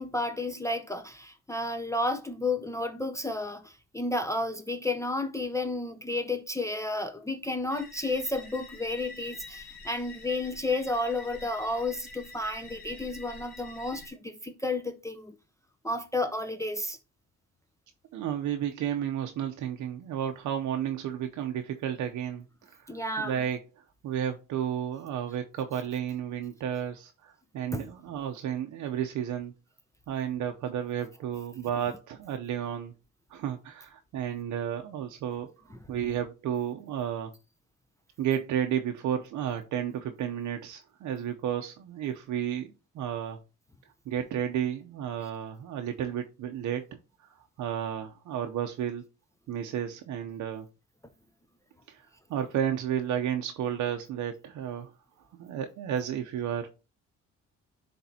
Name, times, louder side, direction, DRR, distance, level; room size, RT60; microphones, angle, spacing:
voice 1, 0.0-15.3 15.8-17.0 22.9-23.4 27.7-27.9, left 2 dB, 10° left, 0.6 m, -32 dB
sound 1, 7.7-14.1, left 3 dB, 35° left, 3.2 m, -47 dB
voice 2, 18.1-23.6 24.0-29.5 30.1-32.9 33.3-37.3 38.2-43.4 44.1-46.9 47.2-47.3 47.6-49.1 49.5-50.7 51.9-54.9 55.3-56.7, right 9 dB, 75° right, 0.7 m, -32 dB
10.0 x 3.4 x 2.7 m
cardioid pair, 90°, 30 cm